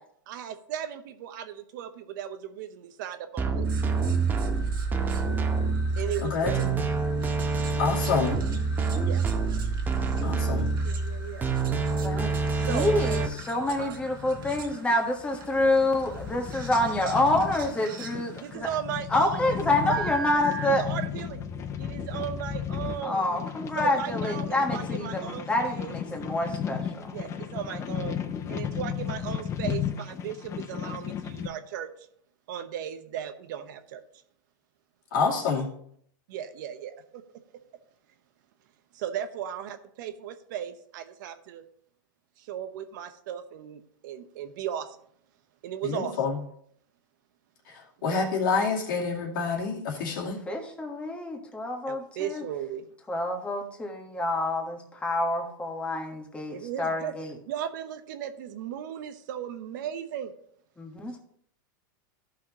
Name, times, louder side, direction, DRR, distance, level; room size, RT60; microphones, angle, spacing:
voice 1, 0.3-3.7 6.0-6.6 9.0-9.2 10.8-11.5 12.5-13.3 13.8-13.9 18.4-19.6 19.9-20.0 20.3-21.4 21.8-23.3 23.8-25.9 27.1-28.2 28.5-32.1 32.5-34.0 36.3-37.2 38.9-41.6 42.4-45.0 45.6-46.1 48.0-48.2 51.9-52.9 56.5-57.1 57.5-60.3, right 9 dB, 65° right, 9 dB, 0.9 m, -36 dB
sound 1, 3.4-13.3, right 4 dB, 15° right, 0.8 m, -27 dB
sound 2, 3.6-18.6 19.9-20.7, right 5 dB, 90° right, 1.5 m, -44 dB
voice 2, 6.2-6.8 7.8-8.4 10.2-10.7 35.1-35.7 45.8-46.4 47.7-50.4, left 5 dB, 70° left, -1 dB, 2.4 m, -28 dB
voice 3, 12.0-18.7 19.1-20.8 23.0-27.2 50.5-52.4 53.1-57.3 60.8-61.2, left 1 dB, 10° left, 2 dB, 1.3 m, -27 dB
sound 3, 12.2-31.5, left 8 dB, 25° left, 0.7 m, -35 dB
14.0 x 5.7 x 2.9 m, 0.66 s
supercardioid pair, 135°, 11 cm